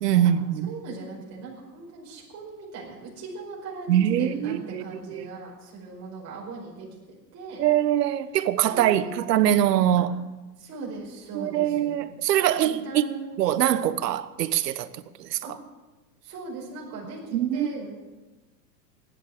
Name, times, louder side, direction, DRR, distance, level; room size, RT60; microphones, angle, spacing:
voice 1, 0.0-0.7 3.9-5.3 7.6-10.1 11.3-13.1 13.4-14.9 15.2-15.4 17.3-17.9, right 11 dB, 70° right, 1.2 m, -23 dB
voice 2, 0.7-7.7 8.7-9.3 10.6-12.1 12.4-13.4 15.4-15.5 16.2-17.9, right 3 dB, 30° right, 5.3 m, -39 dB
15.5 x 10.5 x 7.4 m
hypercardioid pair, 125°, 50 cm